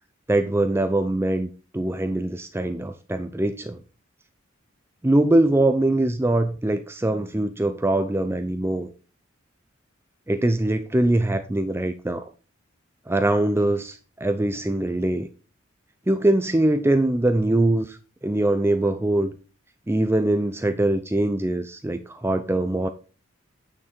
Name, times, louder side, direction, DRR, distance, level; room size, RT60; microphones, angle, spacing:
voice 1, 0.3-3.8 5.0-8.9 10.3-12.3 13.1-15.3 16.1-18.0 18.2-19.3 19.9-22.9, right 1 dB, 10° right, 0.5 m, -22 dB
9.4 x 6.0 x 4.4 m
head